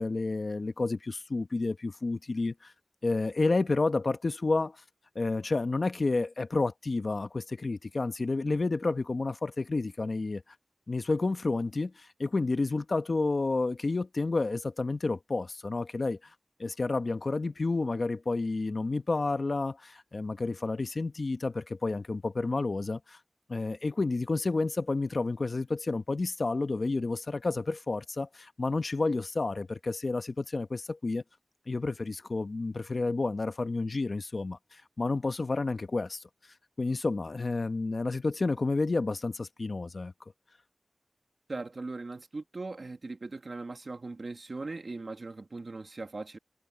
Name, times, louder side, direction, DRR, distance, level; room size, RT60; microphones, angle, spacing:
voice 1, 0.0-2.7 3.0-4.8 5.1-10.4 10.9-16.3 16.6-23.2 23.5-31.2 31.7-36.2 36.8-40.1, left 3 dB, 65° left, 1.1 m, -30 dB
voice 2, 41.5-46.4, right 3 dB, 65° right, 2.3 m, -39 dB
wide cardioid pair, 60°, 0 cm